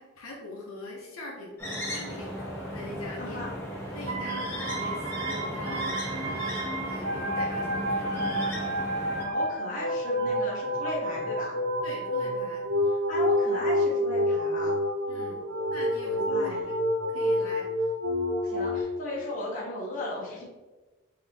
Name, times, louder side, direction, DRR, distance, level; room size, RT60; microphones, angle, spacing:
voice 1, 0.0-3.4 3.9-6.6 6.8-8.5 11.8-12.7 15.1-15.4 15.7-16.7 17.1-17.7, left 1 dB, 85° left, -3 dB, 0.9 m, -42 dB
sound 1, 1.6-9.2, equal, 10° left, 1.1 m, -35 dB
voice 2, 3.2-3.5 9.2-11.6 13.1-14.8 16.3-16.6 18.4-20.4, left 1 dB, 40° left, -6 dB, 1.4 m, -36 dB
sound 2, 4.1-18.8, equal, 65° right, 0.7 m, -29 dB
4.0 x 3.0 x 3.5 m, 1.2 s
head